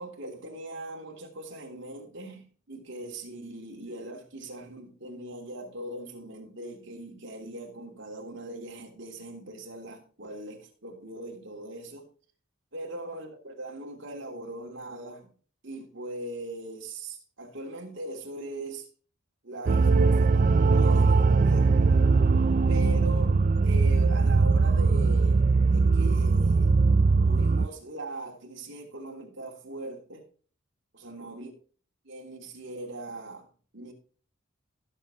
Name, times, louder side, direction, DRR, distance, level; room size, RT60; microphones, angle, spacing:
voice 1, 0.0-12.0 12.7-15.3 15.6-18.9 19.4-21.9 22.7-23.4 23.6-26.8 27.2-30.2 31.0-31.5 32.0-33.5 33.7-33.9, right 1 dB, 60° right, 3.1 m, -40 dB
sound 1, 19.7-27.7, right 4 dB, 40° right, 0.3 m, -21 dB
16.5 x 7.4 x 3.0 m
head